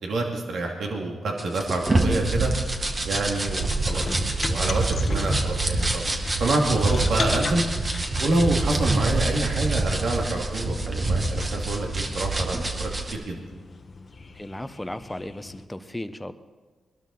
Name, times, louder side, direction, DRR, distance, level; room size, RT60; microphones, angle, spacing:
voice 1, 0.0-2.5 3.0-6.0 6.4-7.6 8.2-13.4, right 2 dB, 75° right, 0 dB, 2.4 m, -27 dB
sound 1, 1.4-13.1, right 2 dB, 35° right, 2.0 m, -26 dB
sound 2, 2.2-15.7, left 3 dB, 45° left, 1.2 m, -38 dB
voice 2, 14.3-16.3, left 1 dB, 10° left, 11 dB, 0.9 m, -35 dB
21.0 x 12.0 x 4.1 m, 1.4 s
cardioid pair, 60°, 0 cm